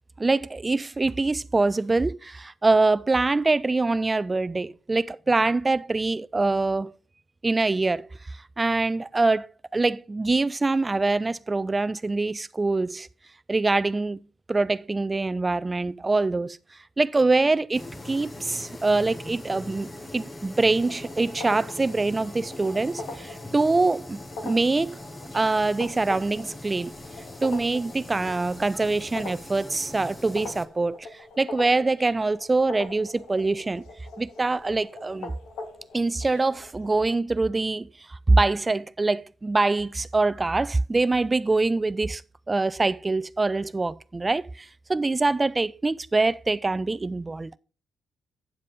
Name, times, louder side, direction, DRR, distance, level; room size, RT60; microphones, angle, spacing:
voice 1, 0.2-6.9 7.4-13.1 13.5-14.2 14.5-16.6 17.0-25.0 25.3-26.9 27.4-33.8 34.2-35.3 35.9-42.2 42.5-47.5, right 3 dB, 20° right, 0.3 m, -24 dB
sound 1, 17.7-30.7, left 1 dB, 15° left, 0.8 m, -41 dB
sound 2, 20.7-37.0, left 3 dB, 85° left, 1.5 m, -42 dB
8.9 x 7.5 x 3.8 m
cardioid pair, 135°, 0 cm